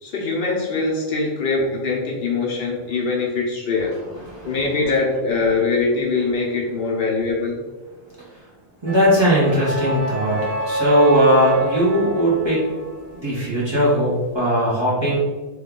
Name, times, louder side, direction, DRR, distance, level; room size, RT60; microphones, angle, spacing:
voice 1, 0.0-3.9 4.4-7.6, left 3 dB, 65° left, -2 dB, 0.8 m, -22 dB
voice 2, 4.2-4.6 8.8-12.6 13.1-15.2, equal, 25° right, -7 dB, 0.9 m, -19 dB
sound 1, 8.9-14.0, right 2 dB, 70° right, 0.8 m, -27 dB
3.0 x 2.3 x 3.6 m, 1.2 s
omnidirectional pair, 1.1 m